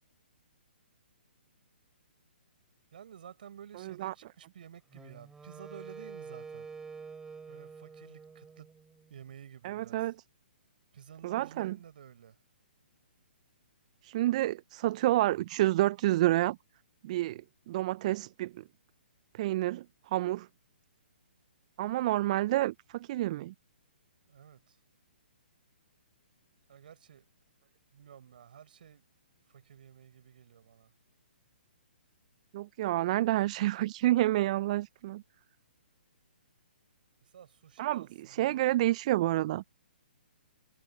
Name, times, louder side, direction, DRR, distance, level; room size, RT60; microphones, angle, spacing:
voice 1, 2.9-6.7 7.5-8.7 9.1-10.0 10.9-12.4 24.3-24.8 26.7-27.2 27.9-29.0 29.5-30.9 37.3-38.9, right 9 dB, 55° right, 5.0 m, -52 dB
voice 2, 3.8-4.1 9.6-10.1 11.2-11.8 14.0-16.6 17.0-17.4 17.7-18.6 19.3-20.5 21.8-23.5 32.5-35.2 37.8-39.6, right 15 dB, 40° right, 0.6 m, -29 dB
Wind instrument woodwind instrument, 4.9-9.1, right 5 dB, 10° right, 5.7 m, -47 dB
figure-of-eight pair, 130°, 6 cm